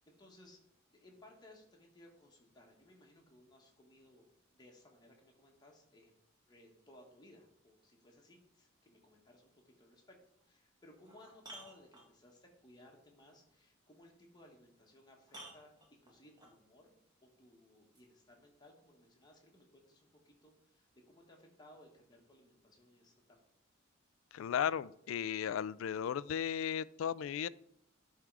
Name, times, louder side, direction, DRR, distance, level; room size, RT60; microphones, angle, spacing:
voice 1, 0.1-0.6 0.9-4.2 4.5-6.1 6.5-10.2 10.4-16.9 17.2-23.4, left 1 dB, 20° left, 0 dB, 1.6 m, -61 dB
sound 1, 10.4-10.5 11.0-12.4 14.4-14.5 15.3-16.6 17.9-18.0, right 1 dB, 20° right, 1.6 m, -54 dB
voice 2, 24.3-27.5, left 8 dB, 80° left, 19 dB, 0.3 m, -35 dB
11.0 x 3.7 x 4.7 m, 0.72 s
head